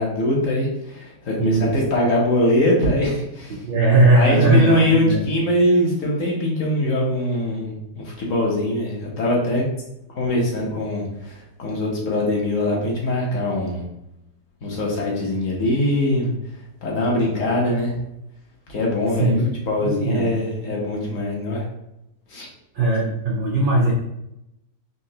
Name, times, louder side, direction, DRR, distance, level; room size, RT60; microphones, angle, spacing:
voice 1, 0.0-3.6 4.1-9.7 10.1-13.9 14.6-16.3 16.8-17.9 18.7-19.3 19.7-21.6 22.3-22.5, left 1 dB, 60° left, -3 dB, 1.2 m, -22 dB
voice 2, 1.3-1.7 3.6-5.2 10.3-10.4 19.2-19.5 19.8-20.3 22.8-23.9, right 2 dB, 80° right, -3 dB, 0.4 m, -18 dB
4.2 x 2.8 x 2.7 m, 0.84 s
omnidirectional pair, 1.7 m